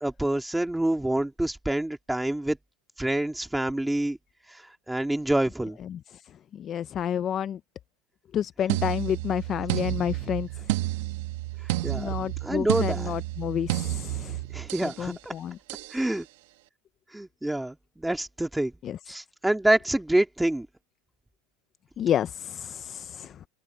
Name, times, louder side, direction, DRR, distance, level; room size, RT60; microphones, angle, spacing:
voice 1, 0.0-2.6 3.0-4.2 4.5-5.8 11.8-12.1 12.4-13.1 14.5-15.3 15.9-16.3 17.1-18.7 19.1-20.7, right 1 dB, 5° right, 2.1 m, -27 dB
voice 2, 6.5-7.6 8.3-10.7 11.9-14.4 14.8-15.6 18.8-19.0 22.0-23.4, left 9 dB, 25° left, 0.4 m, -30 dB
sound 1, 8.7-15.0 15.7-16.0, right 17 dB, 65° right, 1.2 m, -30 dB
supercardioid pair, 160°, 0 cm